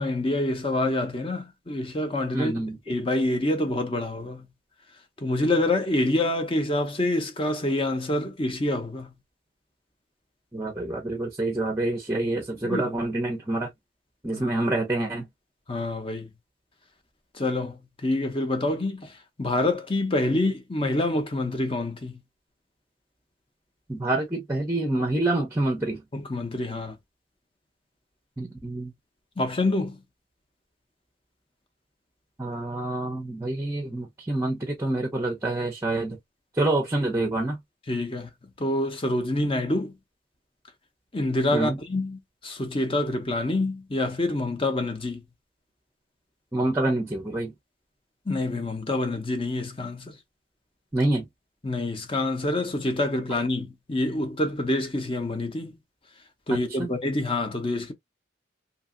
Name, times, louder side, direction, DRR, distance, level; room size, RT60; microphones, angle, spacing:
voice 1, 0.0-4.5 5.2-9.1 12.6-12.9 14.3-14.4 15.7-16.3 17.3-22.2 26.1-27.0 29.4-30.0 37.9-38.3 38.6-39.9 41.1-45.2 48.3-50.2 51.6-55.8 56.5-57.9, left 2 dB, 25° left, 0.7 m, -27 dB
voice 2, 2.3-2.8 10.5-13.7 14.2-15.3 23.9-26.0 28.4-28.9 32.4-36.2 36.6-37.6 41.5-41.8 46.5-47.5 50.9-51.2 56.8-56.9, right 2 dB, 15° right, 0.6 m, -27 dB
2.8 x 2.7 x 2.5 m
head